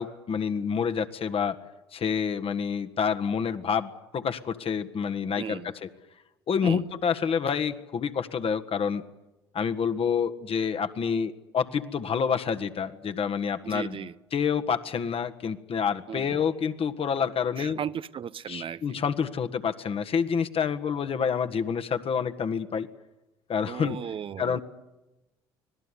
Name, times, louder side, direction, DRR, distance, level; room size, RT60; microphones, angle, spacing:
voice 1, 0.0-1.6 1.9-5.9 6.5-9.0 9.5-17.8 18.5-22.9 23.5-24.0 24.4-24.6, left 6 dB, 45° left, 1.7 m, -28 dB
voice 2, 5.4-5.7 6.6-6.8 13.6-14.2 16.1-16.4 17.6-19.0 23.7-24.6, right 8 dB, 40° right, 0.8 m, -36 dB
25.5 x 18.5 x 10.0 m
hypercardioid pair, 55°, 13 cm